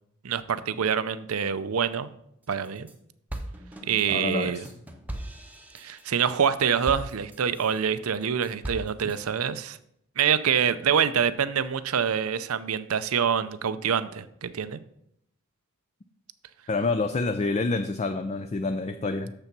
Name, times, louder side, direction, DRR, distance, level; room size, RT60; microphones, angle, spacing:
voice 1, 0.2-2.1 2.5-2.9 3.8-4.6 5.7-9.8 10.2-14.8, right 7 dB, 90° right, 14 dB, 0.6 m, -26 dB
sound 1, 2.4-3.0 3.3-7.8 8.2-9.2, right 1 dB, 10° right, 0.8 m, -39 dB
voice 2, 4.1-4.7 9.0-9.1 16.7-19.3, left 3 dB, 30° left, 8 dB, 0.4 m, -28 dB
7.0 x 6.7 x 6.0 m, 0.73 s
head